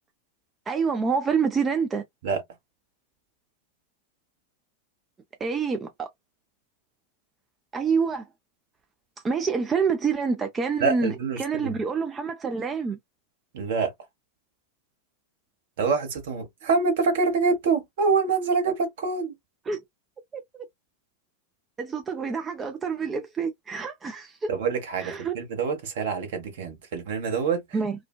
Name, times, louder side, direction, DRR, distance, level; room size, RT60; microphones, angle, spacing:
voice 1, 0.7-2.0 5.4-6.1 7.7-8.2 9.2-13.0 19.7-19.8 20.5-20.6 21.8-24.5 25.0-25.3 27.7-28.0, right 5 dB, 20° right, 0.4 m, -27 dB
voice 2, 10.8-11.8 13.5-13.9 15.8-19.3 24.5-27.6, right 5 dB, 55° right, 0.9 m, -26 dB
2.5 x 2.1 x 2.3 m
figure-of-eight pair, 90°, 0 cm